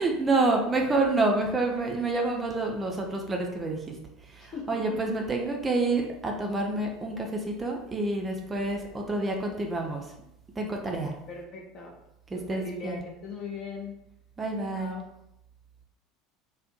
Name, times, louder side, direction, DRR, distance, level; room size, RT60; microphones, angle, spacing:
voice 1, 0.0-3.8 4.2-10.1 10.6-11.2 12.3-13.0 14.4-15.0, right 2 dB, 20° right, 1 dB, 0.4 m, -28 dB
voice 2, 11.3-11.9 12.3-13.9 14.7-15.0, left 4 dB, 40° left, 0 dB, 0.5 m, -40 dB
2.5 x 2.1 x 2.5 m, 0.83 s
figure-of-eight pair, 70°, 0 cm